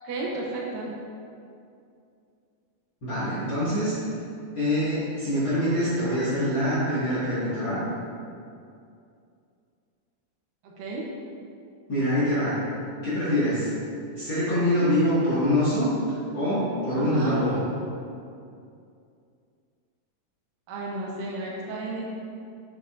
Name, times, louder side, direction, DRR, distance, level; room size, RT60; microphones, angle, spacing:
voice 1, 0.0-0.9 10.6-11.1 16.9-17.4 20.7-22.1, right 2 dB, 75° right, -3 dB, 2.3 m, -33 dB
voice 2, 3.0-3.9 4.5-7.8 11.9-12.6 13.0-13.7 14.2-15.9 16.3-17.6, equal, 45° left, -12 dB, 1.7 m, -24 dB
8.2 x 7.1 x 2.4 m, 2.5 s
omnidirectional pair, 4.3 m